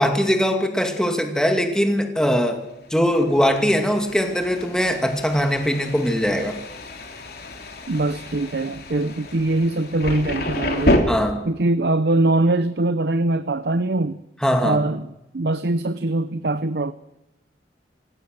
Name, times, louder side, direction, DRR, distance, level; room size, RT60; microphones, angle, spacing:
voice 1, 0.0-2.6 2.9-6.6 11.1-11.4 14.4-14.8, equal, 5° left, 2.3 m, -21 dB
Thunder, 2.8-11.0, left 1 dB, 60° left, 3.0 m, -29 dB
voice 2, 7.9-11.1 11.4-14.2 14.6-16.9, right 2 dB, 60° right, 0.7 m, -22 dB
27.0 x 16.5 x 6.6 m
head